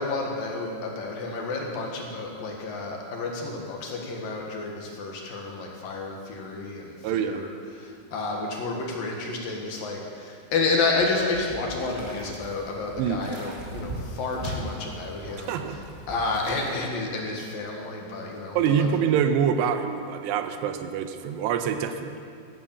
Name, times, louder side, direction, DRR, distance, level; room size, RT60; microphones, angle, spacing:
voice 1, 0.0-7.5 7.7-15.8 16.1-18.9, left 3 dB, 60° left, 0 dB, 3.0 m, -30 dB
voice 2, 7.0-7.4 13.0-13.3 15.5-15.8 18.6-22.3, right 8 dB, 80° right, 7 dB, 2.9 m, -25 dB
sound 1, 11.0-16.8, right 1 dB, 35° right, 1.1 m, -39 dB
14.0 x 13.0 x 7.3 m, 2.3 s
omnidirectional pair, 5.0 m